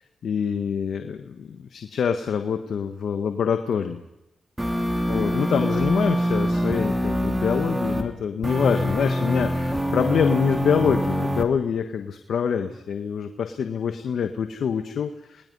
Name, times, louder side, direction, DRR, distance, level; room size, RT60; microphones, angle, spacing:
voice 1, 0.2-4.0 5.1-15.4, left 7 dB, 75° left, 7 dB, 1.3 m, -25 dB
sound 1, 4.6-8.0 8.4-11.4, equal, 10° right, 3.5 m, -24 dB
28.5 x 20.0 x 5.5 m, 0.91 s
supercardioid pair, 50°, 0 cm